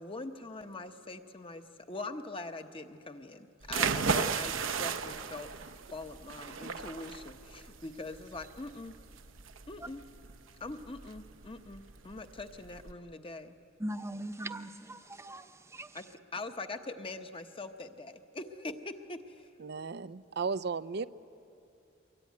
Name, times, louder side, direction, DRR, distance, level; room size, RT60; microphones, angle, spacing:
voice 1, 0.0-8.9 9.7-10.0 10.6-13.5 15.9-19.5, left 2 dB, 30° left, 1.0 m, -43 dB
sound 1, 3.6-12.9, right 5 dB, 80° right, 0.9 m, -36 dB
voice 2, 13.8-15.9, right 1 dB, 15° right, 0.8 m, -40 dB
voice 3, 19.6-21.1, right 5 dB, 55° right, 0.6 m, -35 dB
24.0 x 22.5 x 9.5 m
head